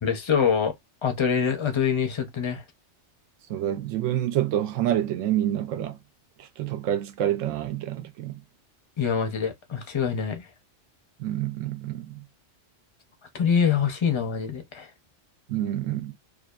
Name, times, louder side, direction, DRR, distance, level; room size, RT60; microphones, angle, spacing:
voice 1, 0.0-0.7 1.0-2.6 9.0-10.5 13.3-14.9, left 7 dB, 40° left, 0.4 m, -25 dB
voice 2, 3.5-6.0 6.4-8.4 11.2-12.2 15.5-16.1, right 12 dB, 80° right, 0.9 m, -27 dB
2.6 x 2.4 x 2.2 m
omnidirectional pair, 1.3 m